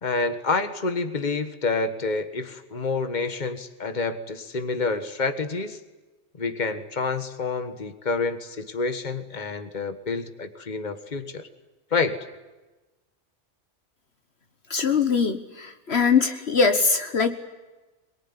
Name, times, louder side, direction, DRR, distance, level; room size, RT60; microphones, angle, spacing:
voice 1, 0.0-5.8 6.4-11.5 11.9-12.2, left 4 dB, 40° left, 10 dB, 1.6 m, -28 dB
voice 2, 14.7-17.4, left 5 dB, 65° left, 8 dB, 1.5 m, -22 dB
23.0 x 22.5 x 9.8 m, 1.2 s
omnidirectional pair, 1.2 m